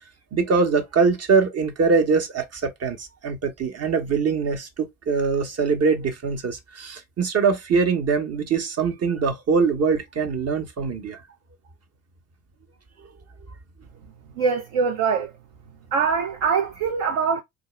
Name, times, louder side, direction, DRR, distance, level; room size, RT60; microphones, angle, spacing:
voice 1, 0.3-11.2, right 5 dB, 35° right, 1.1 m, -23 dB
voice 2, 14.4-15.3 15.9-17.4, right 5 dB, 50° right, 0.7 m, -23 dB
4.4 x 2.5 x 3.1 m
figure-of-eight pair, 55°, 44 cm